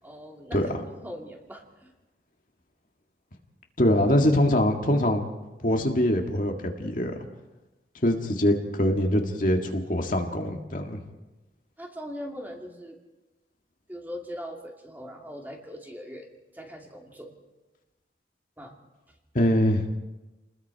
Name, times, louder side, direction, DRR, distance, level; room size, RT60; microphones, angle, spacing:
voice 1, 0.0-1.9 11.8-13.0 13.9-17.4 18.6-18.8, equal, 10° right, 0 dB, 2.6 m, -40 dB
voice 2, 3.8-5.2 5.6-6.5 6.8-7.2 8.0-11.0 19.4-19.9, left 1 dB, 50° left, 2 dB, 1.9 m, -23 dB
29.5 x 20.5 x 4.7 m, 1.1 s
head